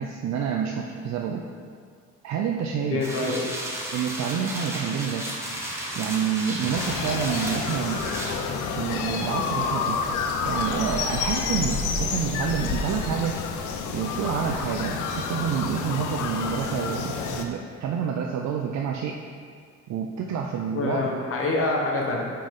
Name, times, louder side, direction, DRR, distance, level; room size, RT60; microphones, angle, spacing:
voice 1, 0.0-1.4 2.2-3.1 3.9-5.3 6.0-8.0 8.8-10.0 10.4-13.4 13.9-19.2 19.9-21.1, right 7 dB, 65° right, 1 dB, 0.5 m, -28 dB
voice 2, 2.9-3.4 20.7-22.3, left 2 dB, 45° left, -1 dB, 1.1 m, -26 dB
sound 1, 3.0-8.3, right 1 dB, 10° right, 1.2 m, -33 dB
sound 2, 6.7-17.5, left 5 dB, 90° left, 0.5 m, -29 dB
5.7 x 5.1 x 3.6 m, 2.1 s
cardioid pair, 90°, 30 cm